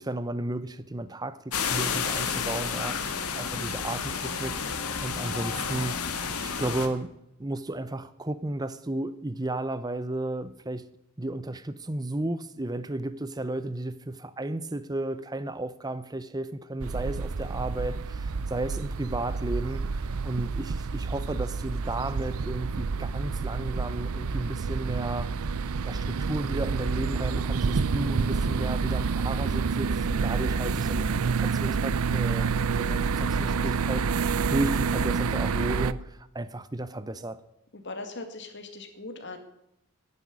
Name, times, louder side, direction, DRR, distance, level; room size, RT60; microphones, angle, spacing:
voice 1, 0.0-6.0 6.4-7.1 7.4-10.9 11.2-25.3 25.8-34.1 34.5-37.4, right 2 dB, 15° right, 0.7 m, -33 dB
sound 1, 1.5-6.9, left 6 dB, 85° left, 1.7 m, -31 dB
sound 2, 16.8-35.9, right 5 dB, 75° right, 0.5 m, -28 dB
voice 2, 37.7-39.4, left 2 dB, 50° left, 2.2 m, -39 dB
11.0 x 9.9 x 9.5 m
head